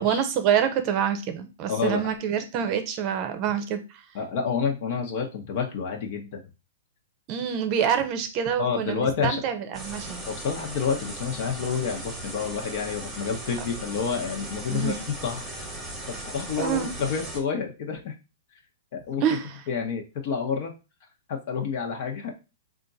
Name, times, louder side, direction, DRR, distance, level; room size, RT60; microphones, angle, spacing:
voice 1, 0.0-4.0 7.3-10.2 14.7-15.0 16.6-16.9 19.2-19.6, right 8 dB, 35° right, 8 dB, 0.7 m, -26 dB
voice 2, 1.7-2.1 4.1-6.4 8.6-9.4 10.3-15.7 16.1-18.1 18.9-19.2 19.7-20.7 21.3-22.3, left 6 dB, 50° left, 2 dB, 1.0 m, -29 dB
sound 1, 9.7-17.4, right 1 dB, 5° right, 1.1 m, -37 dB
3.7 x 2.5 x 4.0 m, 0.29 s
hypercardioid pair, 140°, 0 cm